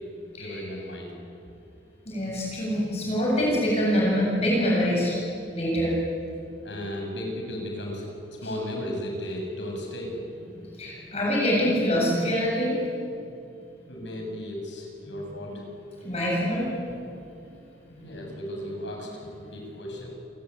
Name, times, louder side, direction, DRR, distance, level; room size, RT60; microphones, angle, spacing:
voice 1, 0.4-1.1 6.6-10.3 13.9-15.7 18.0-20.1, left 1 dB, 80° left, 1 dB, 7.5 m, -35 dB
voice 2, 2.0-5.2 5.5-5.9 10.8-12.8 15.5-15.6 16.0-16.7 17.4-17.6 17.9-18.0, equal, 35° left, -4 dB, 7.9 m, -25 dB
28.0 x 19.5 x 9.5 m, 2.6 s
head